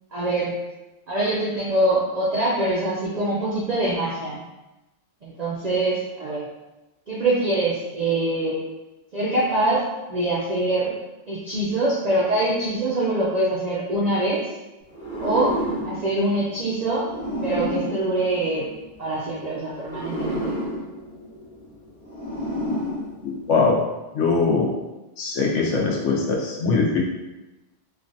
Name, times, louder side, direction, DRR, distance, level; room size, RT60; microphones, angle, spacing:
voice 1, 0.1-0.5 1.1-4.4 5.2-6.4 7.1-8.6 9.1-9.8 10.1-10.9 11.3-14.5 15.2-15.5 15.8-17.1 17.4-18.7 19.0-20.5, right 2 dB, 65° right, -6 dB, 0.4 m, -24 dB
sound 1, 14.9-19.1 19.8-23.7, equal, 15° left, 0.8 m, -31 dB
voice 2, 23.2-23.8 24.1-24.7 25.2-27.0, left 4 dB, 75° left, -2 dB, 1.0 m, -21 dB
3.2 x 2.2 x 2.6 m, 1.0 s
omnidirectional pair, 1.3 m